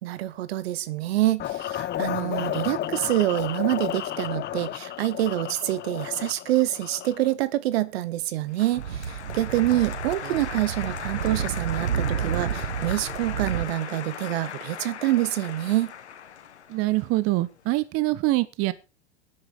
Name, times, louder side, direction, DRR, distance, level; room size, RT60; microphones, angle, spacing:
voice 1, 0.0-15.9, right 15 dB, 65° right, 1.2 m, -26 dB
sound 1, 1.4-7.3, left 12 dB, 30° left, 0.9 m, -32 dB
Applause, 8.5-17.6, left 8 dB, 85° left, 1.7 m, -38 dB
Speech / Wind, 8.7-13.7, right 8 dB, 85° right, 1.3 m, -31 dB
voice 2, 16.7-18.7, right 19 dB, 45° right, 1.0 m, -24 dB
13.0 x 9.9 x 4.9 m
hypercardioid pair, 95°, 33 cm